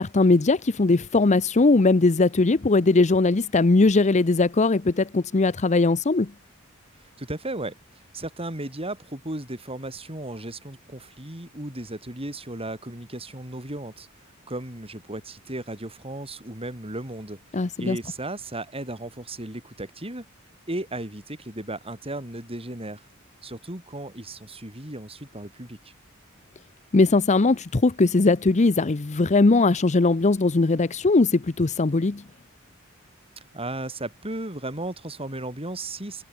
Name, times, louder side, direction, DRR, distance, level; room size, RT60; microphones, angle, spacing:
voice 1, 0.0-6.3 17.5-18.0 26.9-32.2, left 3 dB, 35° left, 0.6 m, -20 dB
voice 2, 7.0-14.1 14.5-20.2 20.7-23.1 23.4-25.9 33.5-36.2, right 1 dB, 25° right, 6.3 m, -35 dB
head